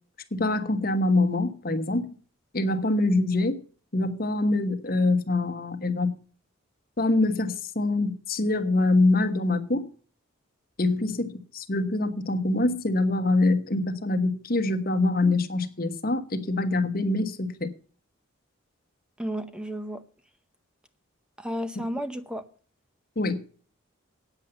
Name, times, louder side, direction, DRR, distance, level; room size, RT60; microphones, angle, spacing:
voice 1, 0.3-2.0 2.5-3.6 3.9-6.2 7.0-9.8 10.8-17.7 23.2-23.4, left 2 dB, 45° left, 1.2 m, -24 dB
voice 2, 19.2-20.0 21.4-22.4, equal, 5° right, 0.7 m, -32 dB
9.0 x 7.5 x 7.8 m
head